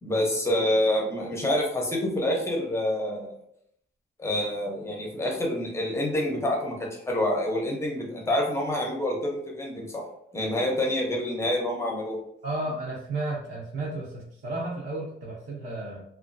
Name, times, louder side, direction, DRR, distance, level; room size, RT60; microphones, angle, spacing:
voice 1, 0.0-3.3 4.2-10.0 10.3-12.2, left 1 dB, 15° left, -1 dB, 0.6 m, -27 dB
voice 2, 12.4-16.0, right 2 dB, 50° right, -7 dB, 0.6 m, -33 dB
2.9 x 2.3 x 2.5 m, 0.73 s
wide cardioid pair, 170°, 20 cm